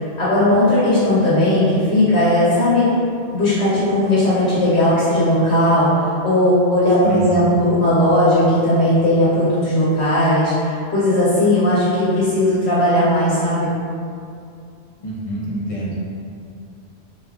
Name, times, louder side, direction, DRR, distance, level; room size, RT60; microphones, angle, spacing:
voice 1, 0.0-2.8 3.3-13.7, left 1 dB, 90° left, -10 dB, 1.2 m, -17 dB
voice 2, 7.0-7.5 15.0-16.1, right 1 dB, 50° left, -6 dB, 0.4 m, -25 dB
2.9 x 2.4 x 3.4 m, 2.4 s
omnidirectional pair, 1.1 m